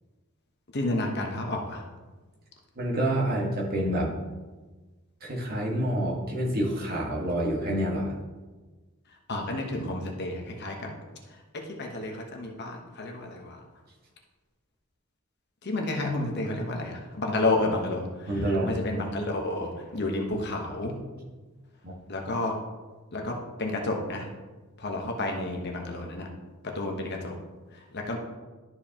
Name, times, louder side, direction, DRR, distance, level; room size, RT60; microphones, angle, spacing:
voice 1, 0.7-1.8 9.3-10.9 11.3-13.6 15.6-21.0 22.1-22.6 23.1-24.3 24.8-26.3 26.6-27.3 27.7-28.2, left 2 dB, 50° left, 1 dB, 1.1 m, -31 dB
voice 2, 2.7-4.1 5.2-8.1 18.3-19.1 21.8-22.0, right 1 dB, 45° right, -3 dB, 1.5 m, -28 dB
12.5 x 4.7 x 2.9 m, 1.3 s
head